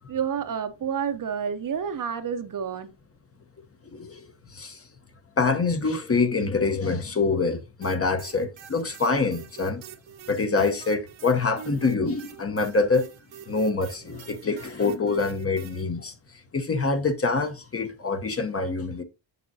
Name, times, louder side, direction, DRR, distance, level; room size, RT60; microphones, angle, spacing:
voice 1, 0.1-2.9, right 7 dB, 45° right, 0.7 m, -29 dB
voice 2, 3.9-4.2 4.5-4.8 5.4-9.8 10.3-13.1 13.5-16.1 16.5-19.0, left 4 dB, 30° left, 0.8 m, -25 dB
sound 1, 7.8-15.8, right 9 dB, 80° right, 1.2 m, -45 dB
7.4 x 6.8 x 2.6 m
cardioid pair, 120°, 46 cm